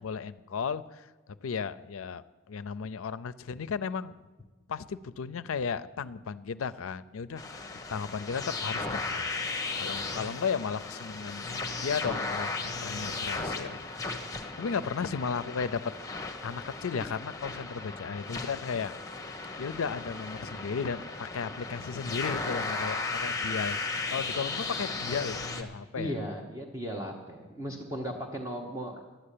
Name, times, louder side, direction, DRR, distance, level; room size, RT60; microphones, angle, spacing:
voice 1, 0.0-4.2 4.7-9.3 9.8-13.8 14.6-15.9 16.4-18.9 19.6-26.1, left 6 dB, 80° left, 14 dB, 0.5 m, -35 dB
sound 1, 7.4-25.6, left 3 dB, 15° left, 1.0 m, -36 dB
voice 2, 26.0-29.0, equal, 15° right, 1 dB, 1.0 m, -36 dB
11.5 x 8.8 x 8.4 m, 1.2 s
head